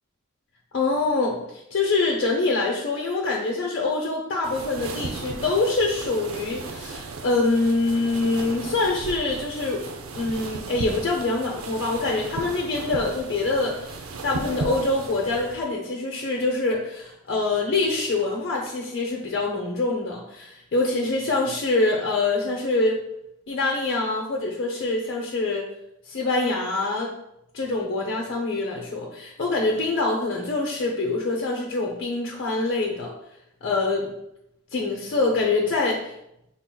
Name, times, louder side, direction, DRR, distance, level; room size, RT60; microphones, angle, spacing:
voice 1, 0.7-9.9 10.1-23.0 23.5-25.7 26.1-27.1 27.5-33.1 33.6-34.1 34.7-36.1, left 3 dB, 60° left, -2 dB, 0.7 m, -25 dB
sound 1, 4.4-15.6, right 3 dB, 90° right, 0.6 m, -36 dB
6.0 x 4.0 x 2.3 m, 0.81 s
head